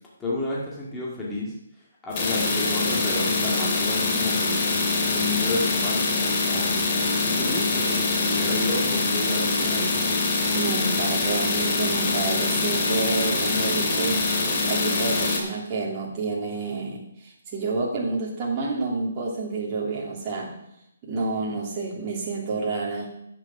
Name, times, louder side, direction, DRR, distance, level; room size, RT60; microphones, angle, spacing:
voice 1, 0.2-4.7 5.1-10.0, left 2 dB, 10° left, -5 dB, 2.0 m, -31 dB
sound 1, 2.1-15.4, left 3 dB, 30° left, 2.3 m, -24 dB
voice 2, 10.5-14.2 14.7-17.0 17.5-20.5 21.0-23.1, right 3 dB, 20° right, -4 dB, 3.0 m, -29 dB
10.5 x 8.5 x 6.1 m, 0.79 s
hypercardioid pair, 170°, 0 cm